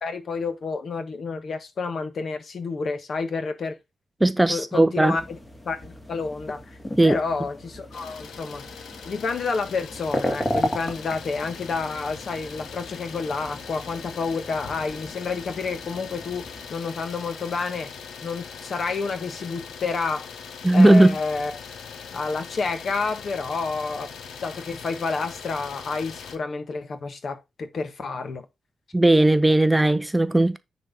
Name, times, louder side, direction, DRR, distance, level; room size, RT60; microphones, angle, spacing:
voice 1, 0.0-3.8 4.5-5.4 5.6-6.8 7.0-8.7 9.0-17.9 18.2-20.3 20.7-21.6 22.1-24.1 24.4-28.4, left 4 dB, 50° left, 1.5 m, -29 dB
voice 2, 4.2-5.2 7.0-7.2 20.6-21.1 28.9-30.6, right 1 dB, 10° right, 0.5 m, -17 dB
sound 1, 5.0-16.7, equal, 20° left, 2.0 m, -35 dB
Idling, 7.9-26.4, left 6 dB, 90° left, 1.2 m, -41 dB
9.9 x 4.1 x 3.9 m
wide cardioid pair, 130°, 0 cm